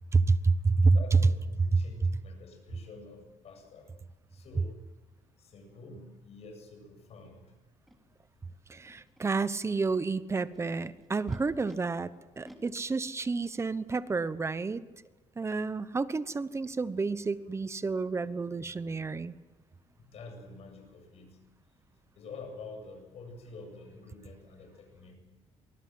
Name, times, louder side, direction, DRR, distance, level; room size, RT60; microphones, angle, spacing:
voice 1, 0.1-1.2 1.7-2.1 8.7-12.1 12.4-14.8 15.4-19.4, right 4 dB, 20° right, 15 dB, 1.0 m, -29 dB
voice 2, 0.9-3.9 4.3-4.9 5.4-7.5 20.0-21.4 22.2-25.2, left 3 dB, 60° left, 4 dB, 7.9 m, -47 dB
Animal, 7.9-8.0 8.7-9.3 10.1-11.8 12.4-13.7, equal, ahead, 3.4 m, -54 dB
25.0 x 19.5 x 7.8 m, 1.2 s
cardioid pair, 120°, 12 cm